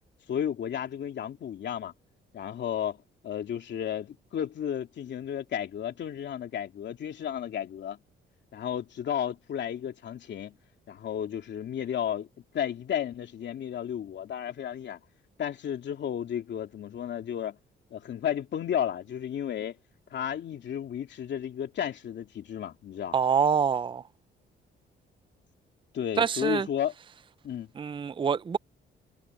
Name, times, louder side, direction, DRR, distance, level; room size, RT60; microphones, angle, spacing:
voice 1, 0.3-1.9 2.3-8.0 8.5-10.5 10.9-12.3 12.5-15.0 15.4-17.6 17.9-19.8 20.1-23.1 25.9-26.9 27.4-27.7, left 9 dB, 65° left, 2.7 m, -33 dB
voice 2, 23.1-24.0 26.2-26.7 27.8-28.6, right 7 dB, 25° right, 0.5 m, -25 dB
cardioid pair, 90°, 20 cm